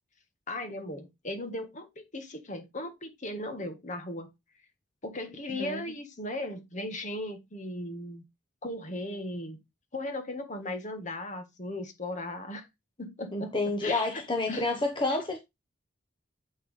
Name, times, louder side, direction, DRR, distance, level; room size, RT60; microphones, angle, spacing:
voice 1, 0.5-4.3 5.0-8.2 8.6-9.6 9.9-12.6 13.0-13.5 13.8-14.2 14.5-14.7, left 1 dB, 40° left, 1.4 m, -37 dB
voice 2, 5.5-5.8 13.3-15.4, left 2 dB, 25° left, 1.0 m, -29 dB
8.0 x 5.9 x 3.2 m
head